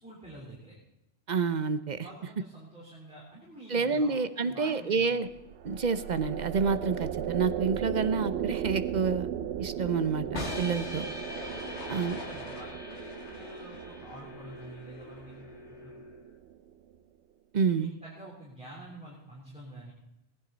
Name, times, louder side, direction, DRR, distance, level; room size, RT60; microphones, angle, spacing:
voice 1, 0.0-0.8 2.0-5.1 11.7-15.4 15.7-15.9 17.7-19.9, right 1 dB, 5° right, -6 dB, 3.7 m, -48 dB
voice 2, 1.3-2.1 3.7-5.3 5.6-9.3 9.6-10.3 10.6-11.1 11.9-12.2 17.5-17.9, right 5 dB, 45° right, 12 dB, 0.7 m, -28 dB
sound 1, 5.3-16.7, right 9 dB, 75° right, 0.9 m, -37 dB
sound 2, 10.3-16.3, left 2 dB, 75° left, 2.6 m, -42 dB
sound 3, 11.3-15.2, left 3 dB, 40° left, 1.5 m, -47 dB
19.0 x 10.5 x 4.0 m, 0.94 s
omnidirectional pair, 1.2 m